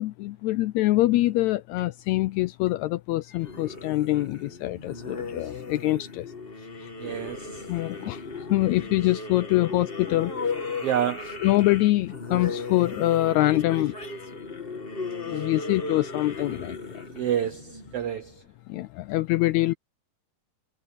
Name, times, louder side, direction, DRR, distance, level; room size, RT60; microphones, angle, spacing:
voice 1, 0.0-6.2 7.7-8.2 8.5-10.3 11.4-14.3 15.3-16.8 18.7-19.7, left 17 dB, 80° left, 1.6 m, -24 dB
sound 1, 3.4-18.3, left 3 dB, 25° left, 1.4 m, -36 dB
voice 2, 7.0-7.6 10.8-11.3 17.1-18.3, right 10 dB, 80° right, 1.3 m, -28 dB
omnidirectional pair, 3.7 m